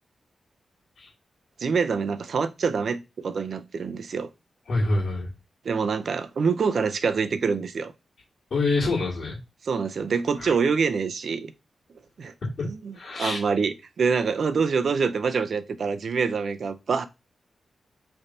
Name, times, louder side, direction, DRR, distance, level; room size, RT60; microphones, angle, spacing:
voice 1, 1.6-4.3 5.6-7.9 9.6-11.5 12.2-12.3 12.6-17.1, right 5 dB, 60° right, 0.4 m, -26 dB
voice 2, 4.7-5.3 8.5-9.4 10.4-10.5 12.6-12.7 12.9-13.4, left 3 dB, 60° left, 1.6 m, -26 dB
3.2 x 2.6 x 4.1 m
wide cardioid pair, 135°, 0 cm